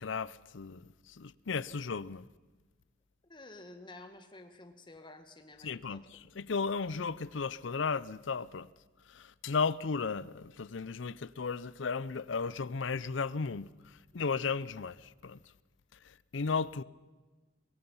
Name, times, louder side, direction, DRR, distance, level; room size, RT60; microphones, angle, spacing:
voice 1, 0.0-2.3 5.6-8.7 9.1-15.4 16.0-16.8, left 5 dB, 75° left, 0.6 m, -35 dB
voice 2, 3.2-6.0, left 2 dB, 25° left, 1.8 m, -51 dB
23.0 x 22.0 x 5.6 m
head